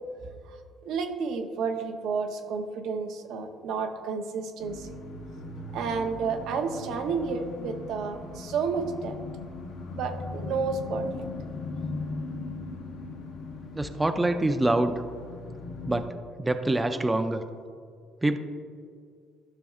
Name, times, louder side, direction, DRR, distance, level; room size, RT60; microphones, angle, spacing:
voice 1, 0.8-4.9 5.7-9.1 9.9-11.2, right 5 dB, 75° right, 5 dB, 0.7 m, -31 dB
sound 1, 4.6-16.0, left 3 dB, 80° left, 1.0 m, -39 dB
voice 2, 13.7-15.0 15.8-16.1 16.4-17.4 18.2-18.4, right 2 dB, 15° right, 7 dB, 0.5 m, -25 dB
13.0 x 5.8 x 2.4 m, 2.2 s
cardioid pair, 100°, 0 cm